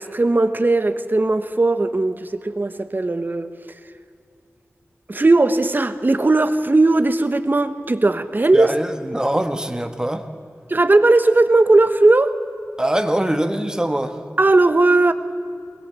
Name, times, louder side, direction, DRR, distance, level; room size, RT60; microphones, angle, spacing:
voice 1, 0.0-3.5 5.1-8.7 10.7-12.4 14.4-15.1, right 2 dB, 40° right, 1.2 m, -17 dB
voice 2, 8.5-10.2 12.8-14.2, right 1 dB, 15° right, 1.6 m, -23 dB
22.0 x 20.5 x 7.0 m
wide cardioid pair, 60°, 5 cm